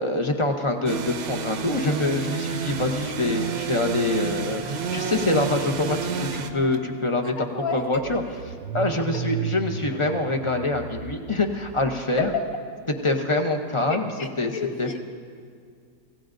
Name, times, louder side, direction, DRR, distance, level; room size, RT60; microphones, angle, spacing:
voice 1, 0.0-7.3 7.7-8.2 8.7-12.3 13.0-14.1 14.4-14.5 14.8-14.9, left 2 dB, 35° left, 4 dB, 0.5 m, -25 dB
sound 1, 0.9-6.5, right 6 dB, 85° right, 1.5 m, -30 dB
sound 2, 3.1-7.3, right 1 dB, 80° left, 3.3 m, -43 dB
Car / Engine starting, 6.7-6.8 7.1-12.4, right 8 dB, 70° right, 0.7 m, -35 dB
voice 2, 7.2-7.8 9.0-9.1 12.2-12.4 13.9-15.1, left 5 dB, 60° left, 4 dB, 1.6 m, -31 dB
26.0 x 16.0 x 2.6 m, 2.2 s
omnidirectional pair, 1.8 m